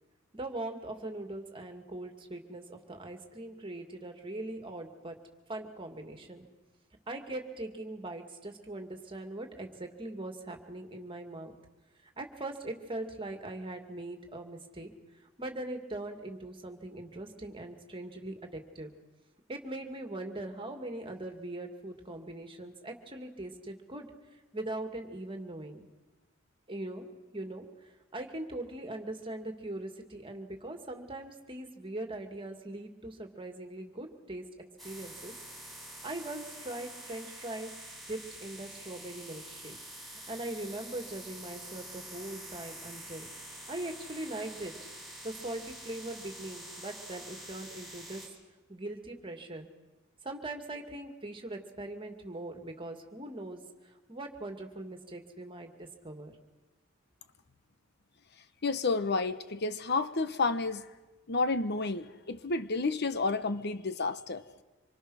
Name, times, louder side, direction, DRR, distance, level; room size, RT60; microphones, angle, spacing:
voice 1, 0.3-5.2 5.5-6.5 7.1-11.5 12.2-14.9 15.4-18.9 19.5-24.1 24.5-25.8 26.7-27.0 27.3-27.7 28.1-34.4 34.8-35.3 36.0-37.7 38.1-39.8 40.3-43.3 43.7-44.7 45.2-48.2 48.7-49.7 50.2-53.6 54.1-56.3, right 2 dB, 25° right, 5 dB, 2.4 m, -41 dB
sound 1, 34.8-48.3, right 1 dB, ahead, 7.5 m, -47 dB
voice 2, 58.6-60.9 61.3-64.4, left 3 dB, 55° left, 12 dB, 1.0 m, -30 dB
26.0 x 24.0 x 6.4 m, 1.2 s
head